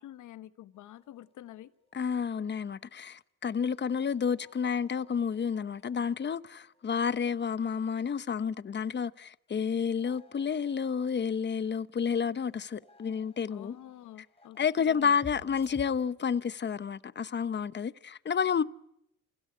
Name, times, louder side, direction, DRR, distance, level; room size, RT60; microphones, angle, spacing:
voice 1, 0.0-1.7 13.5-15.2, left 13 dB, 80° left, 1.2 m, -48 dB
sound 1, 0.7-2.2 2.5-2.7 3.0-3.1 3.7-7.7 8.1-8.2 9.5-15.8, left 3 dB, 20° left, 5.0 m, -56 dB
voice 2, 1.9-13.7 14.6-18.6, left 6 dB, 35° left, 1.0 m, -30 dB
28.5 x 17.0 x 9.8 m
cardioid pair, 90°, 30 cm